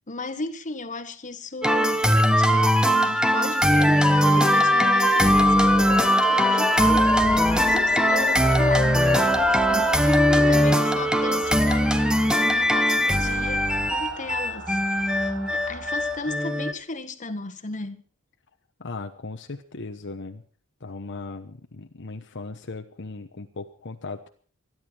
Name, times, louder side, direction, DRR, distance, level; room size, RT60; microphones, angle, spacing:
voice 1, 0.1-2.7 3.0-14.8 15.1-18.0, left 3 dB, 35° left, 1.6 m, -36 dB
sound 1, 1.6-16.7, equal, 5° right, 1.1 m, -20 dB
sound 2, 4.1-14.0 14.3-14.4, left 3 dB, 20° left, 1.7 m, -34 dB
sound 3, 6.7-16.7, right 1 dB, 60° right, 5.7 m, -37 dB
voice 2, 18.8-20.4 20.8-24.3, left 3 dB, 55° left, 1.1 m, -37 dB
26.0 x 11.0 x 4.6 m
head